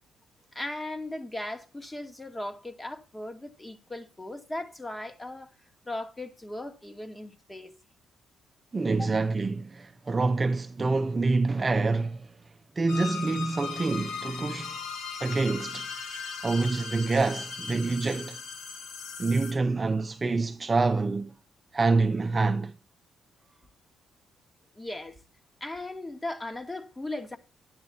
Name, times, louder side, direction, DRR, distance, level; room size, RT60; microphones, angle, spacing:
voice 1, 0.5-5.5 5.9-7.7 9.0-9.1 24.7-25.2 25.6-27.4, left 1 dB, 15° left, 2.2 m, -37 dB
voice 2, 8.7-12.3 12.8-14.8 15.2-15.9 16.4-18.4 19.2-21.3 21.7-22.7, right 3 dB, 25° right, 0.7 m, -26 dB
sound 1, 12.9-19.5, left 5 dB, 85° left, 3.9 m, -38 dB
12.0 x 9.6 x 4.4 m
cardioid pair, 90°, 0 cm